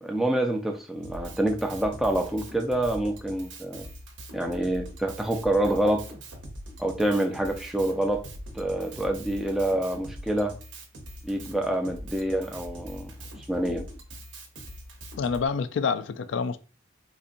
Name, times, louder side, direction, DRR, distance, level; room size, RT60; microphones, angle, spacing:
voice 1, 0.0-3.9 4.3-6.0 6.8-8.2 8.5-10.6 11.2-13.1 13.5-13.8, right 1 dB, ahead, 0.4 m, -27 dB
Drum kit, 1.0-15.5, equal, 70° right, 0.8 m, -42 dB
voice 2, 15.2-16.6, left 5 dB, 65° left, 0.3 m, -27 dB
4.0 x 2.6 x 2.5 m
head